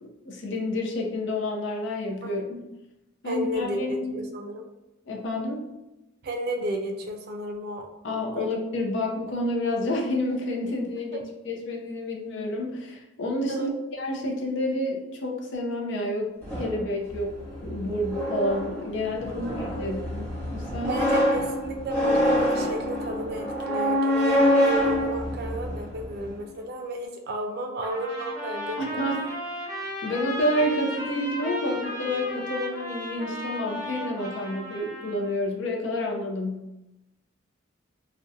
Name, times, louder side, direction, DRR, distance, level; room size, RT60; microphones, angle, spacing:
voice 1, 0.0-2.6 3.2-4.1 5.1-5.7 8.0-13.7 14.0-17.4 17.6-21.0 28.8-29.3 29.7-36.7, left 1 dB, 65° left, 0 dB, 0.5 m, -29 dB
voice 2, 3.2-4.6 6.2-7.9 8.4-8.6 11.1-11.2 13.5-13.7 19.3-19.9 20.9-29.1, right 1 dB, 55° right, 3 dB, 0.4 m, -32 dB
sound 1, 16.4-26.4, equal, 5° left, 1.1 m, -26 dB
Trumpet, 27.8-35.3, equal, 20° right, 0.8 m, -35 dB
2.4 x 2.1 x 2.6 m, 0.95 s
head